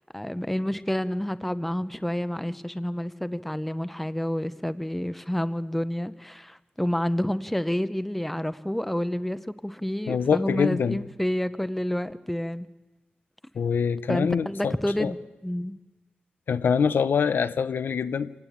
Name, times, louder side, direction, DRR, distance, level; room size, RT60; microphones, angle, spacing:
voice 1, 0.0-12.7 14.1-15.8, equal, 5° left, 0.7 m, -29 dB
voice 2, 10.1-11.0 13.5-15.1 16.5-18.3, left 6 dB, 75° left, 0.8 m, -25 dB
26.5 x 18.5 x 8.7 m
wide cardioid pair, 150°, 4 cm